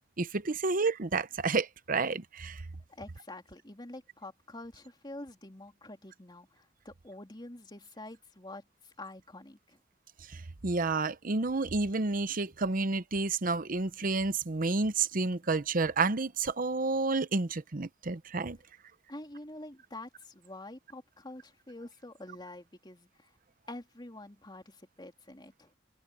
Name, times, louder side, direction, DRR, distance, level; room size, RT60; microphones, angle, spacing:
voice 1, 0.2-2.6 10.3-18.6, right 3 dB, 45° right, 0.8 m, -30 dB
voice 2, 2.9-9.8 19.1-23.3 23.7-25.7, left 1 dB, 25° left, 3.4 m, -47 dB
head